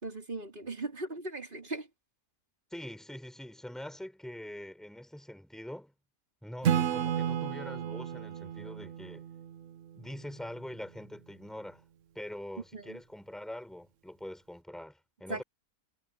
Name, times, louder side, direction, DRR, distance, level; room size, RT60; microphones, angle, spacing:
voice 1, 0.0-1.9 12.7-13.0 15.3-15.4, right 2 dB, 35° right, 4.3 m, -38 dB
voice 2, 2.7-5.9 6.4-9.3 9.9-11.8 12.1-15.4, left 1 dB, ahead, 4.1 m, -44 dB
Acoustic guitar / Strum, 6.6-10.2, right 9 dB, 60° right, 1.1 m, -32 dB
omnidirectional pair, 1.5 m